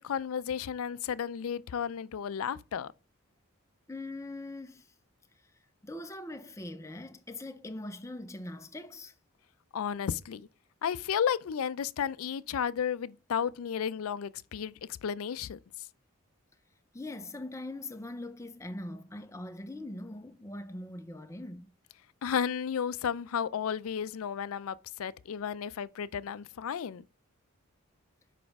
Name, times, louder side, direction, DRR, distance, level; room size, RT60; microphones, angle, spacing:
voice 1, 0.0-2.9 9.7-10.5 10.8-14.7 15.0-15.6 22.2-27.0, left 8 dB, 75° left, 0.4 m, -33 dB
voice 2, 3.9-4.9 5.8-9.1 16.9-21.7, left 1 dB, 15° left, 0.5 m, -41 dB
7.1 x 5.0 x 3.5 m
head